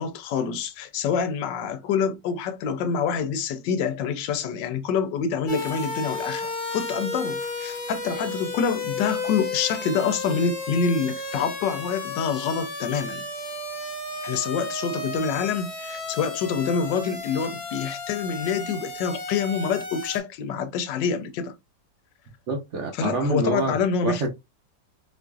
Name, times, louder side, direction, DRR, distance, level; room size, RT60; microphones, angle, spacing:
voice 1, 0.0-13.3 14.2-21.5 22.9-24.3, left 6 dB, 85° left, 1.3 m, -26 dB
sound 1, 5.5-20.2, left 3 dB, 35° left, 0.9 m, -33 dB
voice 2, 22.5-23.8 24.0-24.3, right 2 dB, 55° right, 0.9 m, -26 dB
4.3 x 2.5 x 2.3 m
omnidirectional pair, 1.9 m